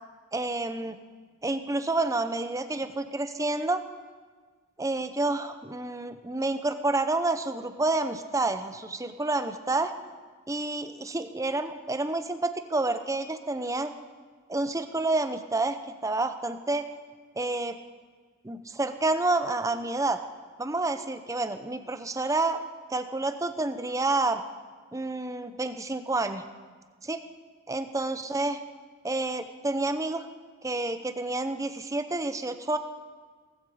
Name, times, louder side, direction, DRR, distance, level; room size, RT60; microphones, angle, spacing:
voice 1, 0.3-1.0 1.4-3.8 4.8-9.9 10.5-13.9 14.5-15.8 16.0-16.8 17.4-17.8 18.4-20.2 20.6-22.6 22.9-24.4 24.9-26.4 27.0-27.2 27.7-28.6 29.0-30.3 30.6-32.8, right 2 dB, 15° right, 9 dB, 0.7 m, -29 dB
18.0 x 15.5 x 5.0 m, 1.5 s
head